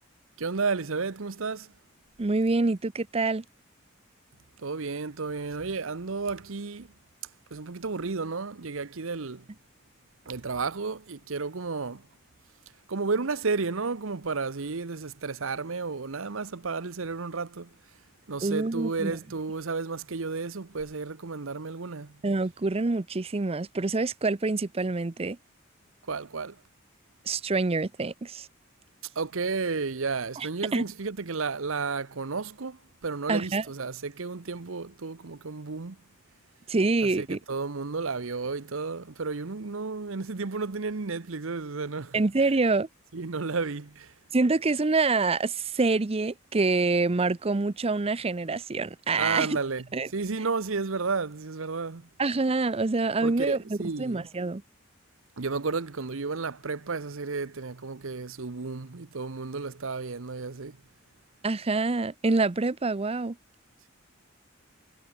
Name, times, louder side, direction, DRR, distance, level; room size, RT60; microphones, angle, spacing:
voice 1, 0.4-1.7 4.6-6.9 7.5-9.4 10.3-12.0 12.9-17.7 18.3-22.1 26.1-26.6 29.2-36.0 37.0-42.2 43.1-44.1 49.2-49.8 50.1-52.1 53.2-54.3 55.4-60.8, right 4 dB, 70° right, 0.9 m, -32 dB
voice 2, 2.2-3.4 18.4-19.2 22.2-25.4 27.3-28.5 30.4-30.8 33.3-33.6 36.7-37.4 42.1-42.9 44.3-49.6 49.9-50.1 52.2-54.6 61.4-63.4, right 3 dB, 30° right, 0.6 m, -26 dB
head